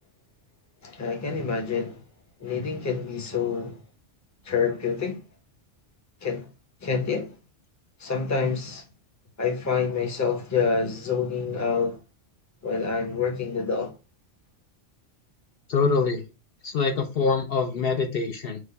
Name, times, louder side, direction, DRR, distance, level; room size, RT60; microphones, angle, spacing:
voice 1, 0.8-2.0 2.4-3.8 4.4-5.2 6.2-6.5 6.8-7.4 8.0-8.8 9.4-12.0 12.6-13.9, left 5 dB, 20° left, 0.7 m, -27 dB
voice 2, 15.7-16.2 16.6-18.6, left 4 dB, 60° left, 0.8 m, -24 dB
4.7 x 2.2 x 3.9 m
omnidirectional pair, 1.2 m